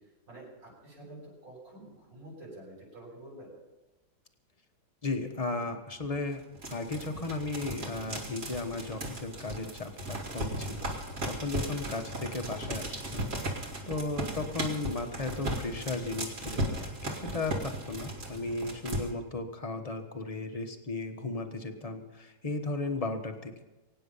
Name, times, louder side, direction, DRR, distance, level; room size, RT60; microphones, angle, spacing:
voice 1, 0.3-3.5, right 1 dB, 85° right, -6 dB, 7.8 m, -48 dB
voice 2, 5.0-6.4 6.7-10.9 11.3-23.6, left 3 dB, 25° left, 5 dB, 1.1 m, -35 dB
sound 1, 6.4-19.1, right 1 dB, 50° right, 2.6 m, -36 dB
23.5 x 9.3 x 5.6 m, 1.1 s
omnidirectional pair, 1.9 m